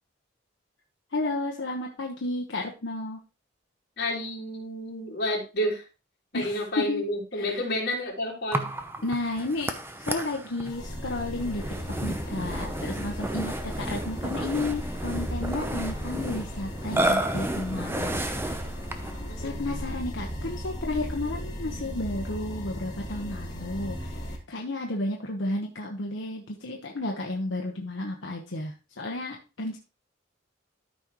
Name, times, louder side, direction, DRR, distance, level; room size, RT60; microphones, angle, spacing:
voice 1, 1.1-3.2 6.3-7.1 7.3-7.7 9.0-11.6 12.0-18.7 19.4-29.8, left 2 dB, 85° left, 0 dB, 1.1 m, -32 dB
voice 2, 4.0-5.8 6.3-8.7 19.3-19.5, left 1 dB, 55° left, -2 dB, 3.3 m, -30 dB
Burping eructation, 8.5-19.2, right 1 dB, 10° right, 0.7 m, -32 dB
sound 1, 10.6-24.4, equal, 20° left, 2.3 m, -36 dB
13.0 x 5.3 x 3.1 m, 0.30 s
head